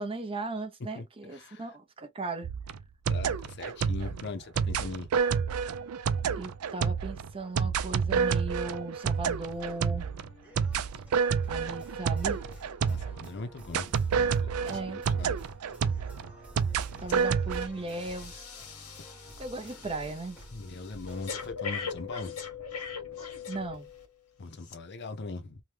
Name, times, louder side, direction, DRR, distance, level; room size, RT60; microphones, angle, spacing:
voice 1, 0.0-2.5 6.3-10.1 11.5-12.4 14.7-15.0 17.0-18.5 19.4-20.4 23.5-23.9, right 3 dB, 25° right, 0.5 m, -37 dB
voice 2, 1.3-1.7 3.1-5.1 12.8-15.4 20.5-22.4 24.4-25.6, left 3 dB, 50° left, 0.6 m, -40 dB
sound 1, 2.4-13.3 13.7-17.7, right 6 dB, 70° right, 0.4 m, -29 dB
sound 2, 9.5-21.5, equal, 5° right, 1.1 m, -50 dB
Breathing, 17.1-17.3 17.6-24.1 24.6-24.7, left 6 dB, 90° left, 1.1 m, -41 dB
2.9 x 2.2 x 3.3 m
head